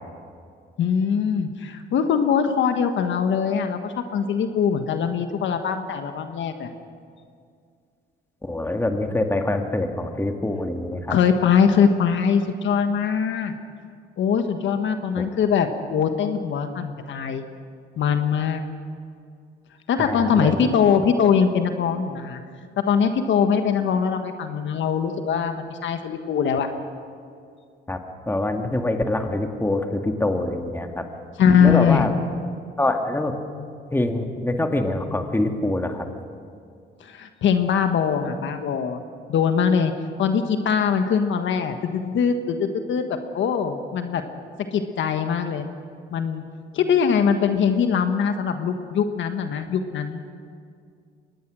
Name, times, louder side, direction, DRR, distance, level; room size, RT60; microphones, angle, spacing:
voice 1, 0.8-6.7 11.1-13.5 14.2-17.4 18.0-18.6 19.9-22.4 22.9-26.7 31.4-32.1 37.0-39.0 39.3-39.9 40.2-44.2 44.7-45.6 46.1-46.4 46.7-50.3, left 7 dB, 70° left, 7 dB, 1.4 m, -22 dB
voice 2, 8.4-11.2 15.2-15.3 20.0-20.8 27.9-28.0 28.3-31.0 31.6-32.1 32.8-33.4 33.9-36.1, left 1 dB, 10° left, 4 dB, 1.9 m, -25 dB
23.0 x 19.0 x 6.3 m, 2.3 s
cardioid pair, 90°, 20 cm